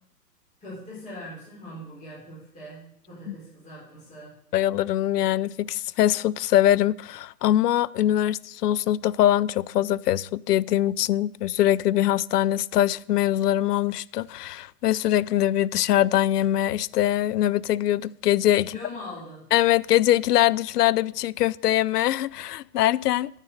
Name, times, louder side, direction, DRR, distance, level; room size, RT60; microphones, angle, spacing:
voice 1, 0.6-4.3 18.6-19.4, left 1 dB, 15° left, 4.7 m, -41 dB
voice 2, 4.5-18.7 19.5-23.3, left 13 dB, 75° left, 0.5 m, -23 dB
9.4 x 7.4 x 6.4 m
hypercardioid pair, 160°, 48 cm